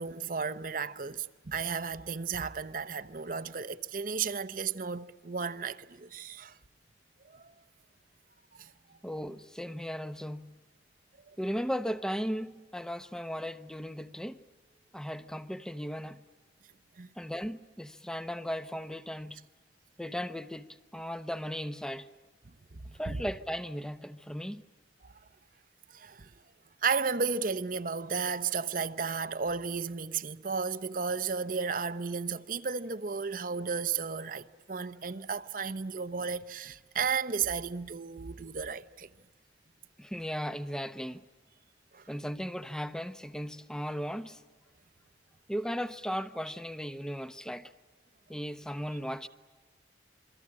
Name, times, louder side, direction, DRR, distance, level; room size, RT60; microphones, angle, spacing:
voice 1, 0.0-6.5 7.3-7.5 8.6-8.7 17.0-17.1 22.7-22.8 23.1-23.2 25.9-26.3 26.8-39.1 41.9-42.0, right 5 dB, 50° right, 0.8 m, -33 dB
voice 2, 9.0-10.6 11.4-14.4 14.9-16.2 17.2-19.5 20.0-22.1 23.0-24.6 40.0-41.3 42.1-44.4 45.5-47.7 48.3-49.3, equal, 5° left, 0.8 m, -36 dB
28.0 x 23.5 x 8.6 m
head